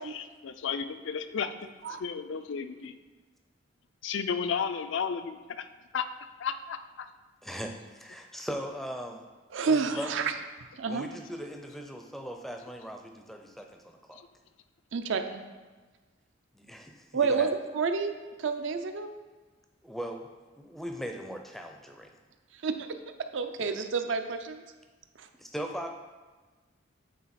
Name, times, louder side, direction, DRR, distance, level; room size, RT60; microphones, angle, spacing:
voice 1, 0.0-2.9 4.0-5.7 5.9-6.1 6.4-7.1 10.0-10.1 14.2-14.3, left 6 dB, 70° left, 10 dB, 0.4 m, -33 dB
voice 2, 7.4-9.2 9.7-10.3 10.8-14.2 16.5-17.5 19.8-20.3 20.6-22.1 23.6-23.7 25.3-25.9, equal, ahead, 3 dB, 0.4 m, -39 dB
voice 3, 9.5-10.3 10.8-11.0 14.9-15.4 17.1-18.1 18.4-19.1 22.6-22.8 23.3-24.6 25.2-25.3, right 5 dB, 70° right, 7 dB, 0.5 m, -29 dB
8.5 x 3.8 x 4.2 m, 1.3 s
head